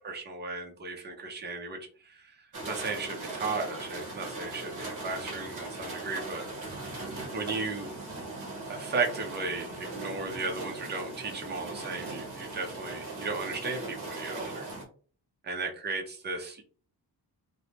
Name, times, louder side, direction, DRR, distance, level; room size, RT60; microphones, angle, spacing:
voice 1, 0.0-6.4 7.3-7.9 8.7-14.7 15.4-16.6, right 3 dB, 25° right, 2 dB, 0.5 m, -35 dB
sound 1, 2.5-14.8, right 2 dB, 45° right, 1.1 m, -39 dB
3.3 x 2.0 x 2.8 m, 0.42 s
wide cardioid pair, 180°, 41 cm